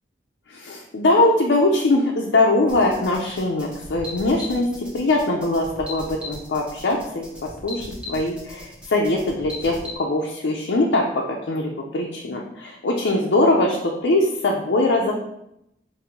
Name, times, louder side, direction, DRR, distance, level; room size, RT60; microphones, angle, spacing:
voice 1, 0.5-15.1, left 2 dB, 85° left, -1 dB, 0.5 m, -22 dB
sound 1, 2.7-10.0, left 2 dB, 5° right, 0.8 m, -38 dB
5.0 x 2.6 x 2.9 m, 0.81 s
head